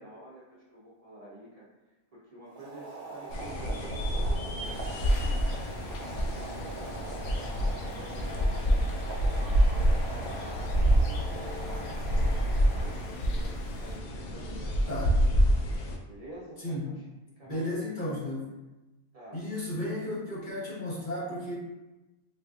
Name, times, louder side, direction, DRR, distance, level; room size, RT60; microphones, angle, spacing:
voice 1, 0.0-1.7 2.1-5.6 6.1-8.9 9.3-9.7 10.1-15.3 16.1-17.0 17.4-18.3 19.1-19.4, right 1 dB, 40° right, -7 dB, 0.5 m, -49 dB
Boiling, 2.4-13.4, right 3 dB, 70° right, 0.9 m, -42 dB
sound 1, 3.3-16.0, equal, 85° left, 1.0 m, -28 dB
sound 2, 4.6-14.0, left 2 dB, 65° left, 0.6 m, -46 dB
voice 2, 14.9-15.2 16.6-16.9 17.5-18.5 19.3-21.5, left 1 dB, 40° left, -7 dB, 1.0 m, -34 dB
4.2 x 2.5 x 2.3 m, 1.0 s
omnidirectional pair, 1.5 m